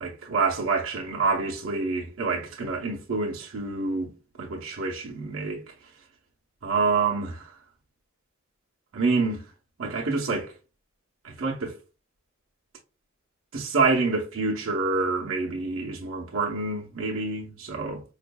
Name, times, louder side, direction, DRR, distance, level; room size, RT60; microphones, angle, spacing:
voice 1, 0.0-4.1 4.4-5.6 6.6-7.5 8.9-9.4 9.8-10.5 11.2-11.7 13.5-18.0, right 4 dB, 85° right, 0.8 m, -27 dB
5.2 x 2.5 x 2.2 m
head